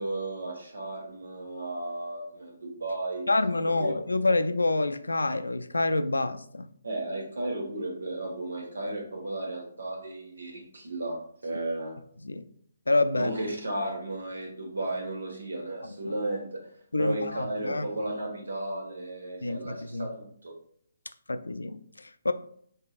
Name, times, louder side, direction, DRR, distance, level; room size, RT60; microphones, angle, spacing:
voice 1, 0.0-3.2 3.8-3.9 6.8-11.9 13.1-16.7 17.0-20.6, right 2 dB, 75° right, 1.5 m, -34 dB
voice 2, 3.3-6.7 12.2-12.5 12.9-13.3 16.0-16.1 16.9-17.9 19.4-20.1 21.3-22.3, left 2 dB, 85° left, 0.4 m, -27 dB
5.4 x 3.6 x 2.4 m
figure-of-eight pair, 140°, 0 cm